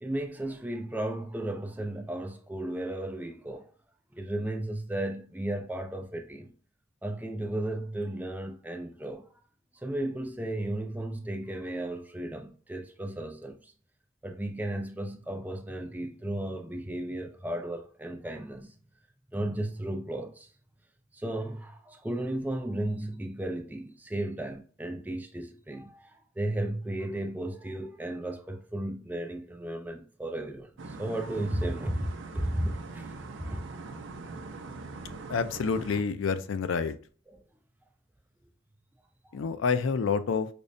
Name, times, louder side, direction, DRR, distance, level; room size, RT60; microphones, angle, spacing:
voice 1, 0.0-3.6 4.1-6.5 7.0-9.2 9.8-13.7 14.2-18.7 19.3-20.5 21.1-26.1 26.4-34.0 37.3-37.4 39.2-39.4, right 1 dB, 10° right, 0.3 m, -34 dB
sound 1, 30.8-36.0, right 3 dB, 70° right, 0.4 m, -42 dB
voice 2, 35.3-36.9 39.3-40.5, left 5 dB, 80° left, 0.4 m, -28 dB
5.1 x 2.1 x 2.5 m
head